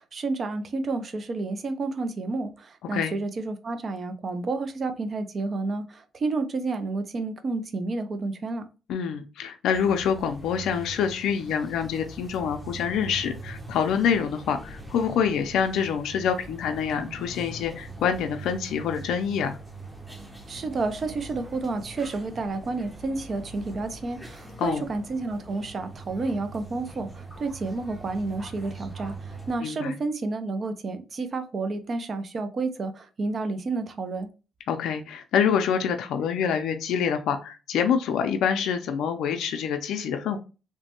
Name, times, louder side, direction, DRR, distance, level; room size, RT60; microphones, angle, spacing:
voice 1, 0.0-8.6 20.5-34.3, right 3 dB, 45° right, 0.5 m, -30 dB
voice 2, 8.9-19.6 24.6-24.9 29.6-30.0 34.7-40.4, left 7 dB, 80° left, 0.4 m, -26 dB
sound 1, 9.7-29.6, right 2 dB, 10° right, 0.7 m, -42 dB
3.1 x 2.1 x 2.9 m
cardioid pair, 90°, 0 cm